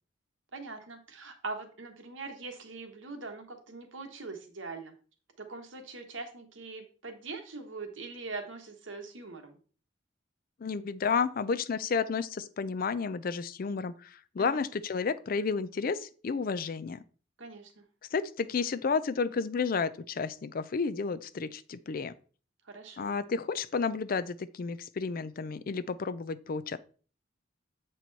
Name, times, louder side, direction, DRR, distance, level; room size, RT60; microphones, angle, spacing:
voice 1, 0.5-4.9 5.4-9.6 14.4-14.6 17.4-17.9 22.6-23.2, right 3 dB, 75° right, 5 dB, 1.3 m, -42 dB
voice 2, 10.6-17.0 18.1-22.1 23.0-26.8, left 5 dB, 45° left, 14 dB, 0.4 m, -31 dB
7.7 x 4.5 x 4.0 m, 0.40 s
head